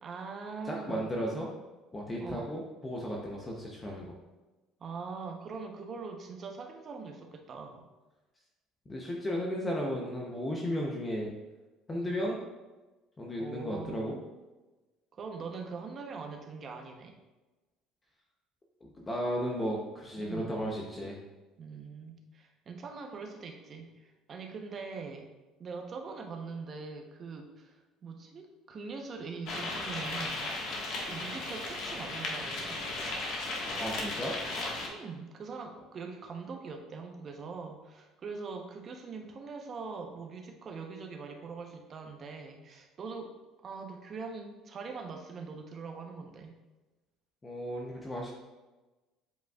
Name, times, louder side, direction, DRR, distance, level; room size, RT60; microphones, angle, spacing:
voice 1, 0.0-1.1 2.2-2.6 4.8-7.8 11.9-12.2 13.4-14.1 15.1-17.1 20.2-20.6 21.6-25.3 25.6-30.5 31.1-32.9 34.8-43.3 43.6-46.5, right 4 dB, 30° right, 3 dB, 0.7 m, -42 dB
voice 2, 0.7-1.5 1.9-4.1 8.9-11.3 11.9-12.4 13.2-14.2 18.8-21.2 33.8-34.4 47.4-48.3, equal, 15° left, -2 dB, 0.6 m, -34 dB
sound 1, 29.5-34.9, left 2 dB, 55° left, 1.4 m, -36 dB
7.9 x 5.1 x 2.3 m, 1.2 s
cardioid pair, 155°, 0 cm